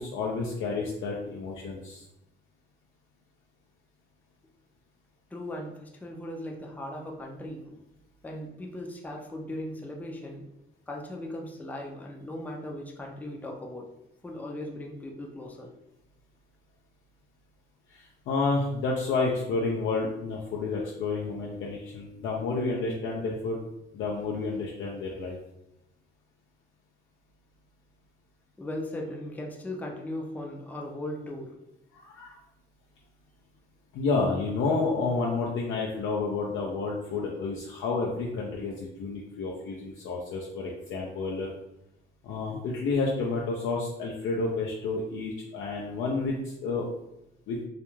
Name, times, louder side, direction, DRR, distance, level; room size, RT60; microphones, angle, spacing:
voice 1, 0.0-2.0 17.9-23.6 23.9-25.4 31.9-32.4 33.9-41.5 42.2-46.9 47.5-47.6, left 3 dB, 80° left, -3 dB, 0.5 m, -30 dB
voice 2, 5.3-7.8 8.2-10.4 10.9-13.9 14.2-15.7 28.6-31.5, left 1 dB, 10° left, 0 dB, 0.4 m, -38 dB
2.4 x 2.1 x 3.0 m, 0.85 s
cardioid pair, 90°, 20 cm